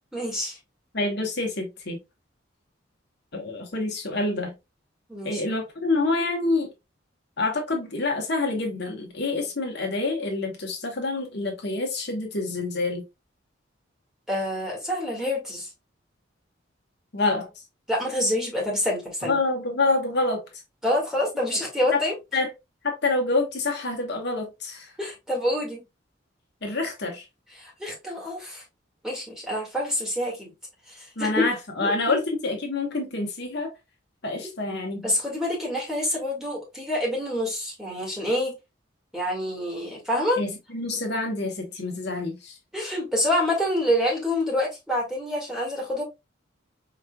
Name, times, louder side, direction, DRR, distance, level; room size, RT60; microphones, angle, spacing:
voice 1, 0.1-0.6 5.1-5.4 14.3-15.7 17.9-19.4 20.8-22.1 25.0-25.8 27.6-28.6 29.0-30.5 30.9-31.5 31.8-32.2 35.0-38.5 39.1-40.4 42.7-46.0, left 1 dB, 5° right, 1.7 m, -27 dB
voice 2, 0.9-2.0 3.3-4.5 5.2-6.7 7.4-13.0 17.1-17.5 19.2-20.4 21.9-22.0 22.3-22.5 22.8-24.9 26.6-27.2 31.2-33.7 34.2-35.1 40.4-42.6, left 3 dB, 60° left, 1.1 m, -27 dB
4.8 x 3.1 x 2.2 m
head